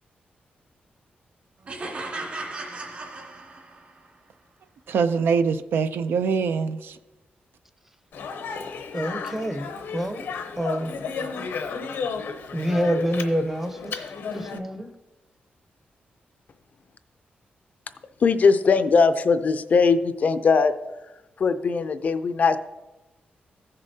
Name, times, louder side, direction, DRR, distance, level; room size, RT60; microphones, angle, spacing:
sound 1, 1.7-4.0, right 2 dB, 45° right, 2.0 m, -36 dB
voice 1, 4.9-7.0, right 5 dB, 85° right, 0.4 m, -23 dB
Speech, 8.1-14.6, left 5 dB, 80° left, 0.8 m, -33 dB
voice 2, 8.9-10.2 10.6-11.0 12.5-14.9, equal, 10° right, 0.6 m, -27 dB
voice 3, 18.2-20.7 21.4-22.6, left 5 dB, 45° left, 0.4 m, -20 dB
15.0 x 6.6 x 2.7 m
wide cardioid pair, 160°, 4 cm